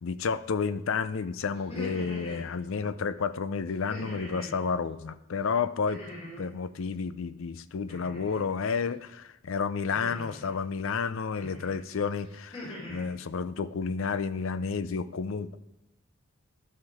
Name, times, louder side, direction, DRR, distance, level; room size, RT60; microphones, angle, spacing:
voice 1, 0.0-6.0 6.4-15.6, left 5 dB, 65° left, 14 dB, 0.5 m, -31 dB
sound 1, 1.6-2.5 3.9-4.6 5.9-6.5 7.9-8.5 9.9-10.5 11.4-11.8 12.2-13.1, left 1 dB, 30° left, 3.0 m, -42 dB
12.0 x 5.7 x 4.9 m, 0.94 s
head